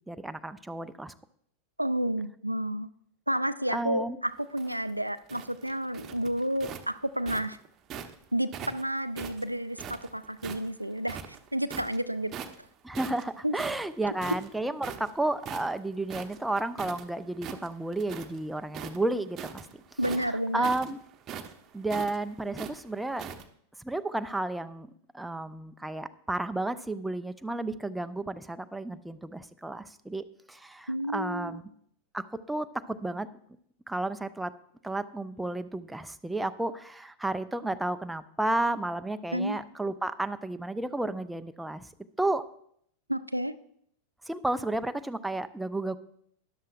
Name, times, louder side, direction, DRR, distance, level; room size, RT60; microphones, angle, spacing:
voice 1, 0.1-1.1 3.7-4.2 12.8-19.6 20.2-21.0 21.7-23.3 23.8-24.9 25.1-31.6 32.1-33.3 33.9-34.5 34.8-41.9 42.2-42.4 44.3-46.0, right 2 dB, 5° right, 10 dB, 0.5 m, -32 dB
voice 2, 1.8-2.9 3.3-7.6 8.3-12.4 13.4-13.6 20.0-20.7 30.9-31.6 39.3-39.6 43.1-43.6, right 1 dB, 90° right, 12 dB, 0.4 m, -31 dB
sound 1, 4.4-8.2 8.5-10.7 11.0-12.0 12.3-12.7 12.9-17.0 17.3-18.4 18.7-23.4, right 8 dB, 30° right, 0.9 m, -41 dB
13.0 x 11.0 x 2.5 m, 0.69 s
figure-of-eight pair, 90°, 0 cm